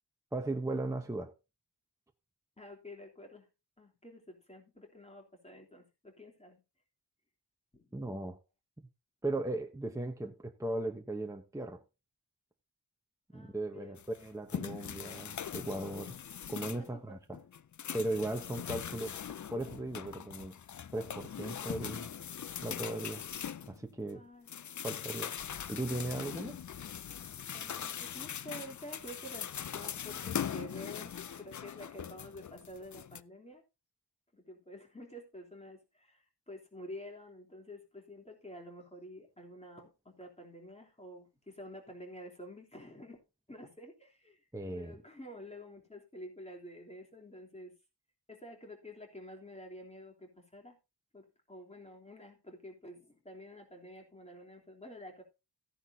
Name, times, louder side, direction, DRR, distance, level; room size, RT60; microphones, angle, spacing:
voice 1, 0.3-1.3 7.9-8.4 9.2-11.8 13.3-16.1 16.5-17.4 17.9-19.1 19.5-20.6 20.9-22.1 22.6-23.2 23.7-24.2 24.8-25.3 25.7-26.6 44.5-45.0, right 2 dB, 10° right, 1.0 m, -37 dB
voice 2, 2.6-3.5 3.8-6.6 7.7-7.8 13.3-14.0 16.8-17.2 24.1-24.5 27.5-31.1 31.4-33.6 34.3-43.2 43.5-47.8 48.3-50.8 51.1-55.2, left 1 dB, 15° left, 3.3 m, -49 dB
sound 1, 14.0-16.9 17.3-24.1 24.5-33.2, left 8 dB, 45° left, 0.5 m, -41 dB
14.5 x 10.5 x 2.8 m
wide cardioid pair, 120°, 41 cm